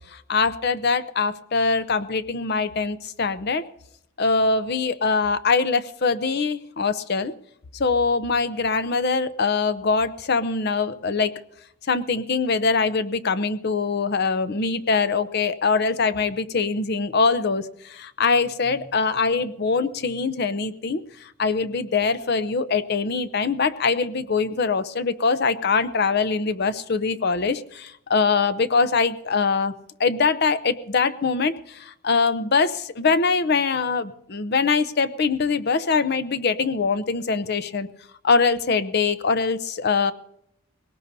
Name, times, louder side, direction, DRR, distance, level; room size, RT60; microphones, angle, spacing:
voice 1, 0.0-3.6 4.2-7.3 7.7-11.3 11.9-29.7 30.0-37.9 38.2-40.1, left 4 dB, 50° left, 12 dB, 0.6 m, -23 dB
21.5 x 18.5 x 2.7 m, 0.73 s
head